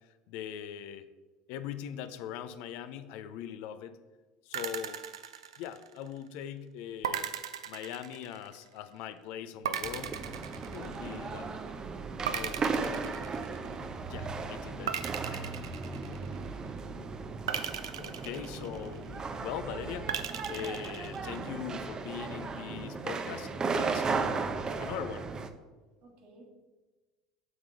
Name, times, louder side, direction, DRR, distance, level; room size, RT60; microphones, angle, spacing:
voice 1, 0.3-1.1 1.5-4.0 4.4-5.0 5.6-7.3 7.7-10.2 10.7-11.6 12.3-13.1 14.0-15.0 15.2-15.6 17.9-20.1 20.5-24.4 24.8-25.3, left 9 dB, 65° left, 12 dB, 0.5 m, -41 dB
sound 1, 4.5-6.1 7.0-8.7 9.6-11.4 12.2-13.9 14.9-16.6 17.5-19.2 20.1-21.5, right 9 dB, 80° right, 0.5 m, -38 dB
sound 2, 9.8-25.5, right 4 dB, 30° right, 0.7 m, -36 dB
voice 2, 15.9-16.5 26.0-26.5, right 2 dB, 60° right, 0 dB, 2.1 m, -56 dB
7.9 x 3.7 x 6.2 m, 1.2 s
hypercardioid pair, 75°, 3 cm